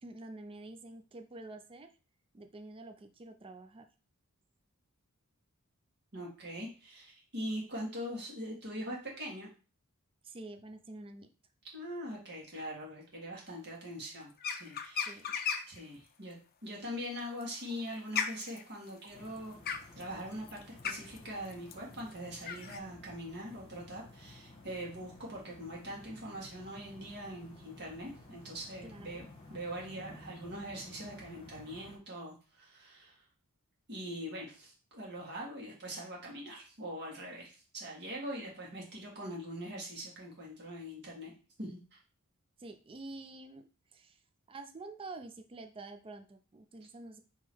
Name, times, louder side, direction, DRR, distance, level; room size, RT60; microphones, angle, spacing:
voice 1, 0.0-1.9 2.3-3.9 10.2-11.3 15.1-15.4 28.8-29.3 42.6-44.2 44.5-47.2, right 2 dB, 25° right, 8 dB, 0.4 m, -48 dB
voice 2, 6.1-9.5 11.7-15.2 15.7-19.6 20.0-29.2 29.5-33.2 33.9-41.3 41.6-42.0, equal, 50° right, -3 dB, 1.7 m, -42 dB
sound 1, 14.4-15.8 17.2-22.8, left 6 dB, 45° left, 0.4 m, -37 dB
sound 2, 19.1-32.0, left 1 dB, 25° left, 1.2 m, -54 dB
3.7 x 3.0 x 4.5 m, 0.34 s
head